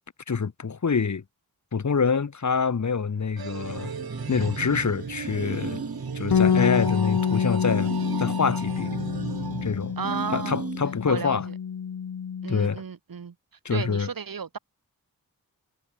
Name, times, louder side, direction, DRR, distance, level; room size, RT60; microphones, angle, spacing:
voice 1, 0.3-1.2 1.7-3.9 4.3-5.8 6.1-7.9 8.2-8.9 9.6-9.9 10.3-11.4 12.5-12.8 13.6-14.1, left 5 dB, 50° left, 1.6 m, -26 dB
sound 1, 3.4-10.4, right 6 dB, 90° right, 4.4 m, -38 dB
sound 2, 3.6-11.1, right 4 dB, 40° right, 2.6 m, -36 dB
voice 2, 4.4-4.8 10.0-10.7 11.1-11.5 12.4-13.3 13.7-14.6, right 6 dB, 70° right, 2.5 m, -34 dB
Bass guitar, 6.3-12.6, left 7 dB, 90° left, 2.0 m, -27 dB
wide cardioid pair, 85°, 36 cm